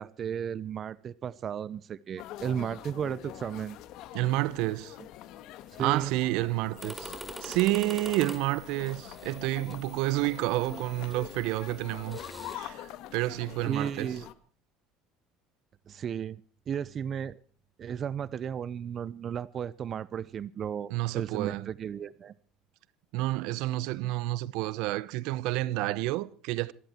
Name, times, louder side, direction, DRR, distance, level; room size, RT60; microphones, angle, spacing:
voice 1, 0.0-3.8 5.8-6.1 13.6-14.3 15.9-17.4 17.8-22.3, right 8 dB, 45° right, 0.8 m, -34 dB
sound 1, 2.2-14.3, left 13 dB, 65° left, 1.6 m, -45 dB
voice 2, 4.1-4.9 5.8-7.2 7.4-12.2 12.5-14.1 20.9-21.7 23.1-26.7, right 18 dB, 70° right, 0.9 m, -29 dB
sound 2, 6.8-12.6, right 1 dB, 5° right, 4.0 m, -45 dB
26.0 x 11.5 x 4.5 m
supercardioid pair, 85°, 0 cm